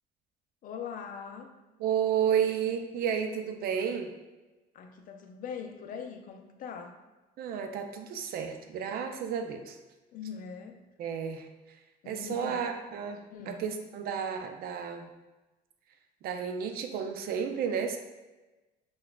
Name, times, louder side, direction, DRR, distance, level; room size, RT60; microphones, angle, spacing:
voice 1, 0.6-1.5 4.7-7.0 10.1-10.8 12.0-12.7 13.3-13.7, left 7 dB, 55° left, 6 dB, 0.4 m, -41 dB
voice 2, 1.8-4.1 7.4-9.8 11.0-11.5 12.1-15.1 16.2-18.0, right 8 dB, 65° right, 6 dB, 0.4 m, -32 dB
5.6 x 2.3 x 2.3 m, 1.1 s
cardioid pair, 110°, 17 cm